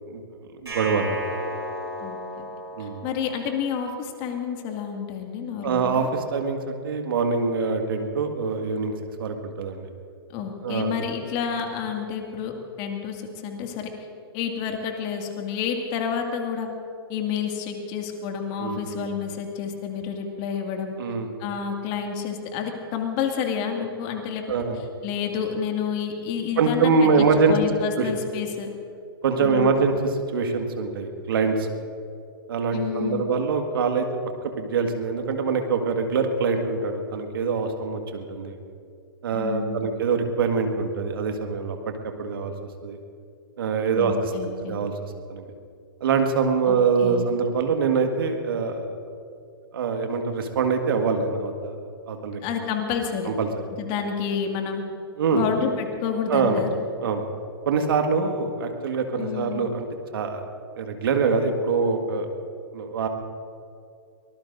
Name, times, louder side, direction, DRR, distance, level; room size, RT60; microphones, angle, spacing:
voice 1, 0.6-1.2 2.8-3.0 5.6-8.9 9.2-9.9 10.6-10.9 18.6-19.1 21.0-21.3 24.5-24.8 26.6-27.6 28.0-28.1 29.2-31.7 32.5-34.1 34.6-38.6 39.2-41.9 42.2-42.5 42.8-43.0 43.6-44.9 45.3-45.4 46.0-48.9 49.7-51.8 52.1-52.4 53.3-53.5 55.2-55.4 56.3-56.6 57.0-57.2 57.7-59.9 60.1-60.4 60.8-62.3 62.7-63.1, right 5 dB, 65° right, 5 dB, 1.9 m, -24 dB
sound 1, 0.7-3.7, equal, 90° right, 4.8 m, -34 dB
voice 2, 2.0-2.5 2.8-6.1 10.3-12.5 12.8-13.9 14.3-16.7 17.1-20.9 21.4-24.4 25.0-28.7 29.4-29.8 32.7-33.2 39.3-39.9 43.9-44.8 46.7-47.3 52.4-53.3 53.8-54.8 55.3-56.7 59.2-59.7, left 7 dB, 40° left, 3 dB, 2.2 m, -29 dB
24.0 x 19.5 x 2.7 m, 2.4 s
hypercardioid pair, 115°, 13 cm